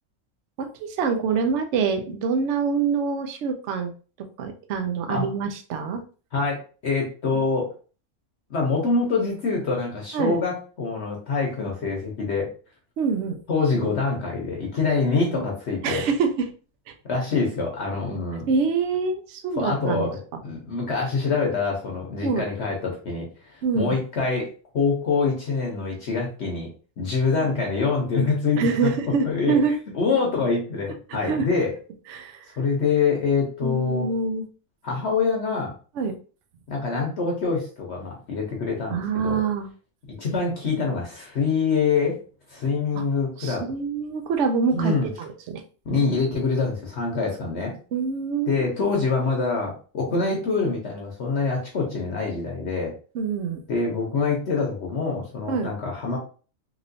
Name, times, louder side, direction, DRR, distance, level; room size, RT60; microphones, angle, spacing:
voice 1, 0.6-3.9 4.4-6.0 10.1-10.4 13.0-13.4 15.4-15.5 15.8-16.4 16.9-17.0 18.5-20.1 22.2-22.4 23.6-24.0 27.4-27.5 28.6-29.7 31.2-31.4 32.1-32.5 33.6-34.4 36.0-36.1 38.9-39.7 43.4-45.6 47.9-48.7 53.1-53.6 55.5-55.7, right 5 dB, 65° right, 5 dB, 0.8 m, -25 dB
voice 2, 6.3-7.7 8.5-12.5 13.5-16.0 17.0-18.4 19.6-26.7 27.0-28.9 29.2-29.6 29.9-31.7 32.6-34.1 34.8-35.7 36.7-39.4 40.2-42.2 42.5-43.6 44.7-45.1 45.9-47.8 48.5-52.9 53.7-56.2, left 4 dB, 55° left, 0 dB, 0.9 m, -25 dB
3.1 x 2.9 x 2.5 m, 0.38 s
omnidirectional pair, 1.5 m